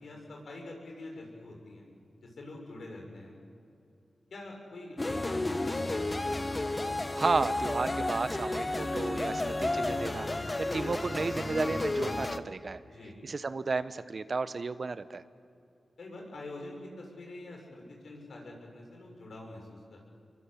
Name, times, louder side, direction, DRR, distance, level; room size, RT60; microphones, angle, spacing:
voice 1, 0.0-1.9 2.2-3.3 4.3-5.9 6.2-6.4 12.9-13.1 16.0-20.1, left 2 dB, 80° left, 0 dB, 6.9 m, -45 dB
sound 1, 5.0-12.4, left 2 dB, 35° left, 1.5 m, -32 dB
voice 2, 7.1-12.8 13.2-15.2, right 4 dB, 60° right, 13 dB, 1.1 m, -33 dB
26.5 x 23.0 x 8.6 m, 2.6 s
cardioid pair, 40°, 0 cm